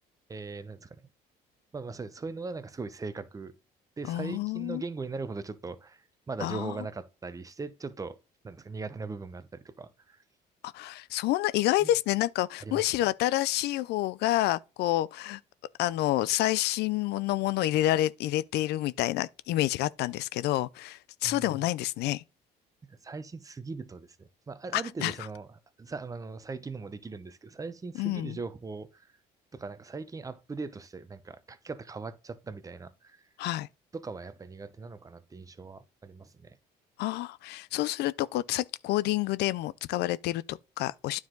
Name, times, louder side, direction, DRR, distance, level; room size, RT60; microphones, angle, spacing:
voice 1, 0.3-1.0 1.7-3.5 4.0-8.2 8.4-10.2 11.8-11.9 12.6-12.9 21.2-21.5 22.9-29.1 29.5-33.2 33.9-36.6, right 4 dB, 20° right, 0.8 m, -40 dB
voice 2, 4.1-4.8 6.4-6.7 10.6-15.4 15.8-22.2 24.7-25.1 28.0-28.4 33.4-33.7 37.0-41.2, left 15 dB, 80° left, 0.4 m, -28 dB
9.4 x 4.8 x 3.8 m
cardioid pair, 110°, 17 cm